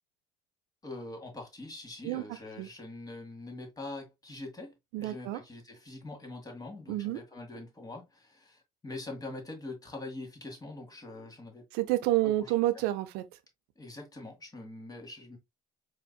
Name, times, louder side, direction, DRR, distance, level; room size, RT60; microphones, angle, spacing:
voice 1, 0.8-11.7 12.2-12.5 13.8-15.4, left 2 dB, 20° left, 2.1 m, -44 dB
voice 2, 4.9-5.4 6.9-7.2 11.7-13.2, right 15 dB, 65° right, 0.7 m, -29 dB
4.3 x 4.1 x 2.3 m
hypercardioid pair, 65°, 18 cm